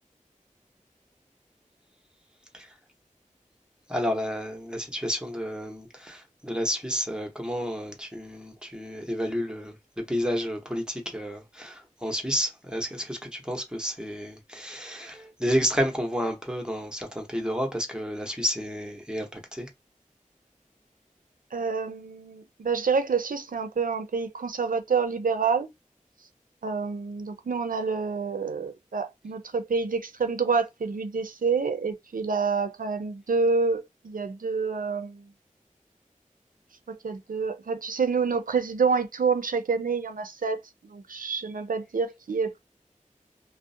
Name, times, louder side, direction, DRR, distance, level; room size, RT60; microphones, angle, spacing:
voice 1, 3.9-19.7, equal, 5° right, 0.8 m, -31 dB
voice 2, 21.5-25.7 26.6-35.2 36.9-40.6 40.9-42.6, right 5 dB, 90° right, 0.4 m, -28 dB
2.4 x 2.0 x 2.6 m
wide cardioid pair, 40°, 14 cm